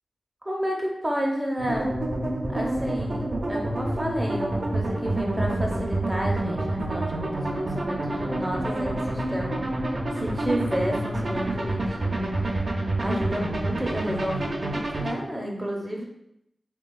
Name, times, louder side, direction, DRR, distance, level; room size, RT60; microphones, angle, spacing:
voice 1, 0.4-1.9 2.5-3.2 3.5-9.6 9.9-16.0, equal, 25° right, -1 dB, 0.6 m, -31 dB
sound 1, 1.6-15.1, right 1 dB, 65° right, 0.5 m, -28 dB
3.2 x 2.2 x 2.2 m, 0.78 s
cardioid pair, 45°, 0 cm